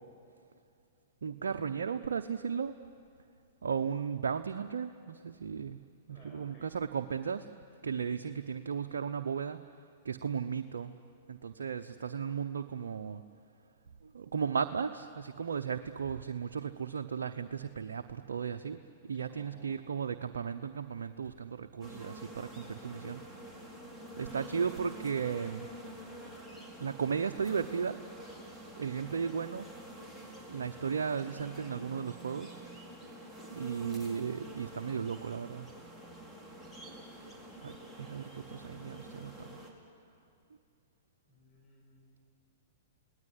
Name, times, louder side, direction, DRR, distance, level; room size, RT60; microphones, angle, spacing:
voice 1, 1.2-2.7 3.6-5.8 6.1-7.5 7.8-9.6 10.0-10.9 11.3-13.2 14.0-23.2 24.1-25.7 26.8-28.0 28.7-29.7 30.3-32.6 33.5-35.7 37.6-39.6, right 6 dB, 80° right, 6 dB, 0.9 m, -35 dB
voice 2, 6.1-6.7 19.2-19.9 37.2-37.7 41.3-42.2, left 2 dB, 35° left, -2 dB, 6.5 m, -60 dB
sound 1, 21.8-39.7, right 1 dB, ahead, 4.2 m, -48 dB
29.0 x 19.0 x 9.8 m, 2.4 s
hypercardioid pair, 115°, 0 cm